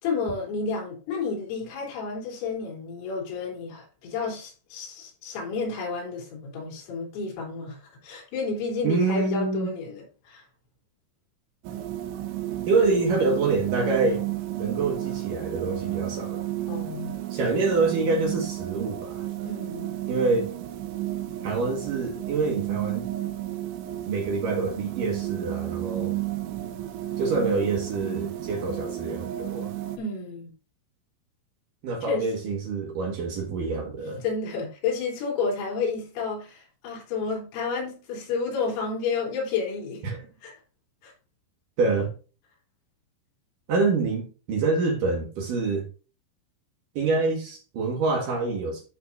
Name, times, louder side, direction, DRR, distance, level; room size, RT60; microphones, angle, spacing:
voice 1, 0.0-10.5 16.7-17.2 19.4-19.9 30.0-30.5 32.0-32.3 34.2-40.0 40.4-40.5 41.0-41.1, left 4 dB, 85° left, 5.9 m, -31 dB
voice 2, 8.8-9.7 12.7-14.2 14.6-16.5 17.3-19.3 20.1-20.5 21.4-23.1 24.1-26.2 27.2-29.7 31.8-34.2 40.0-40.3 41.8-42.1 43.7-45.9 47.0-48.8, right 3 dB, 60° right, 2.5 m, -26 dB
sound 1, 11.6-30.0, right 13 dB, 80° right, 3.2 m, -32 dB
13.0 x 5.9 x 2.6 m
omnidirectional pair, 5.6 m